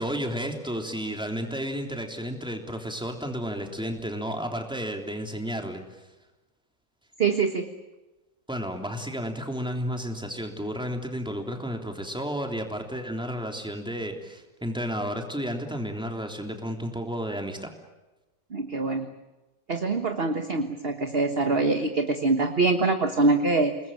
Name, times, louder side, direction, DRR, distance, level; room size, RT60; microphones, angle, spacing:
voice 1, 0.0-6.0 8.5-17.7, equal, 5° right, 3 dB, 3.3 m, -32 dB
voice 2, 7.2-7.7 18.5-19.1 19.7-23.8, right 3 dB, 35° right, 6 dB, 1.5 m, -24 dB
29.5 x 20.0 x 8.9 m, 1.1 s
omnidirectional pair, 1.9 m